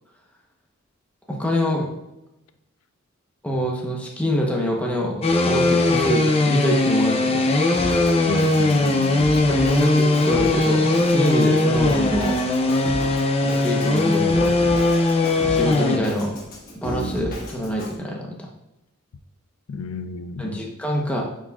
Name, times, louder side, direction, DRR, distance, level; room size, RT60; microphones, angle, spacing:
voice 1, 1.3-1.9 3.4-7.5 9.5-12.4 13.4-14.5 15.5-16.3 16.8-18.4 20.4-21.2, equal, 5° left, 0.9 m, -25 dB
sound 1, 5.2-16.0, left 2 dB, 30° left, 0.5 m, -19 dB
Drum kit, 7.7-17.9, equal, 45° left, 1.3 m, -34 dB
voice 2, 8.3-9.3 19.7-20.7, left 4 dB, 80° left, 0.4 m, -32 dB
8.9 x 4.8 x 2.4 m
head